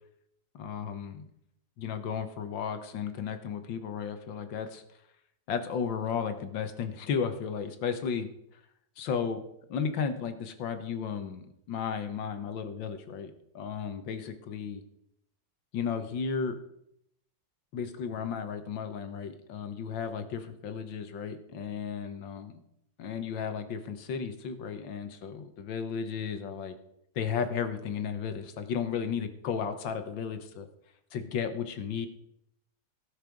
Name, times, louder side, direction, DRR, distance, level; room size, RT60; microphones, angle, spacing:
voice 1, 0.5-1.3 1.8-4.8 5.5-8.3 9.0-9.4 9.7-14.8 15.7-16.6 17.7-22.6 23.0-26.8 27.2-30.7 31.1-32.1, left 6 dB, 85° left, 9 dB, 1.9 m, -34 dB
16.0 x 6.6 x 5.2 m, 0.76 s
omnidirectional pair, 2.0 m